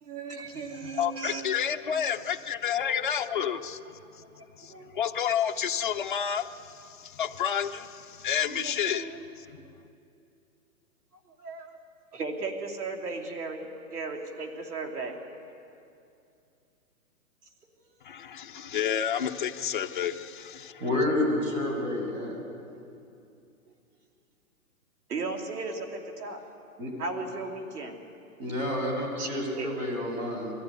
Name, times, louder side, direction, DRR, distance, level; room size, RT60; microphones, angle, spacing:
voice 1, 0.0-1.6 1.9-2.0 2.8-3.0 3.5-3.6 4.2-4.3 4.7-5.0 8.5-9.3 11.4-11.8 12.1-15.2 20.8-20.9 25.1-26.4 27.0-28.0 29.2-29.7, right 3 dB, 85° right, 3 dB, 3.3 m, -36 dB
voice 2, 0.8-3.8 4.1-4.2 4.6-9.6 18.0-20.8, left 8 dB, 35° left, 5 dB, 0.6 m, -30 dB
voice 3, 20.8-22.4 26.8-26.9 28.4-30.5, left 1 dB, 60° right, 1 dB, 6.5 m, -29 dB
22.0 x 14.5 x 9.3 m, 2.6 s
hypercardioid pair, 170°, 45 cm